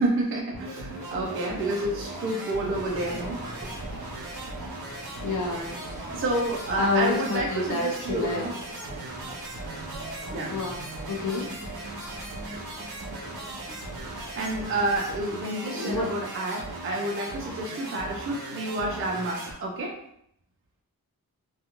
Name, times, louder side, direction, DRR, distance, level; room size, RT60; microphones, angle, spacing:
voice 1, 0.0-3.7 6.1-8.6 9.2-9.4 10.2-10.6 14.0-20.0, right 1 dB, 35° right, -1 dB, 0.4 m, -29 dB
sound 1, 0.5-19.5, right 2 dB, 85° right, 0.7 m, -38 dB
sound 2, 2.6-15.2, right 1 dB, 20° right, 0.8 m, -43 dB
voice 2, 5.2-6.0 6.8-8.4 10.5-10.8 11.1-11.5 15.7-16.2, left 3 dB, 55° left, -1 dB, 0.6 m, -29 dB
2.5 x 2.3 x 2.8 m, 0.73 s
wide cardioid pair, 125°, 36 cm